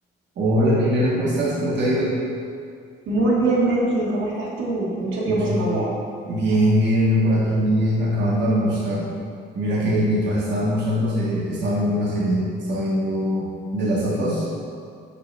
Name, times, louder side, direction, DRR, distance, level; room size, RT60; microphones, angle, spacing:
voice 1, 0.4-2.2 5.2-5.7 6.3-9.1 9.5-13.5 13.7-14.5, equal, 65° right, -6 dB, 1.2 m, -21 dB
voice 2, 3.1-5.9, right 2 dB, 85° right, -6 dB, 1.5 m, -22 dB
5.7 x 5.3 x 3.2 m, 2.3 s
cardioid pair, 90°, 20 cm